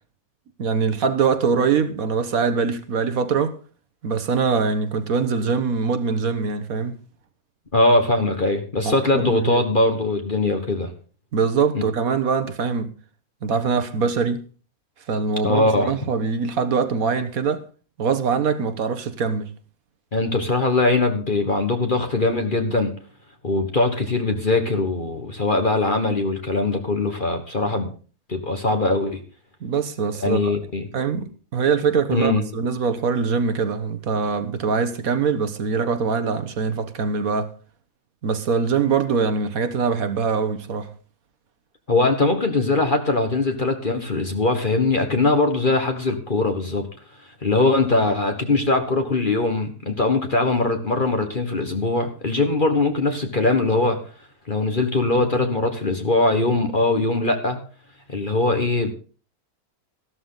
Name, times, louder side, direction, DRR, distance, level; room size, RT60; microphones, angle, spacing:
voice 1, 0.6-3.5 4.0-7.0 8.8-9.6 11.3-12.9 13.4-14.4 15.1-17.6 18.0-19.5 29.6-30.5 30.9-37.5 38.2-40.9, right 5 dB, 70° right, 1.6 m, -23 dB
voice 2, 7.7-10.9 11.7-11.8 15.4-15.9 20.1-23.0 23.4-27.9 28.3-29.2 30.2-30.9 32.1-32.5 41.9-46.9 47.4-54.0 54.5-57.6 58.1-58.9, left 2 dB, 35° left, 1.5 m, -21 dB
14.0 x 12.5 x 3.9 m
omnidirectional pair, 1.6 m